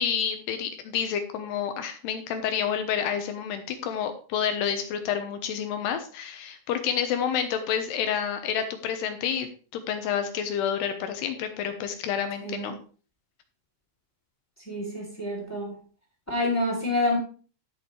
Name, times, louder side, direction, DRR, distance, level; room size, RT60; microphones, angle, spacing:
voice 1, 0.0-12.8, left 8 dB, 75° left, 7 dB, 2.9 m, -29 dB
voice 2, 14.7-15.7 16.3-17.2, left 2 dB, 5° left, -1 dB, 2.5 m, -27 dB
16.0 x 6.8 x 3.3 m, 0.39 s
omnidirectional pair, 5.2 m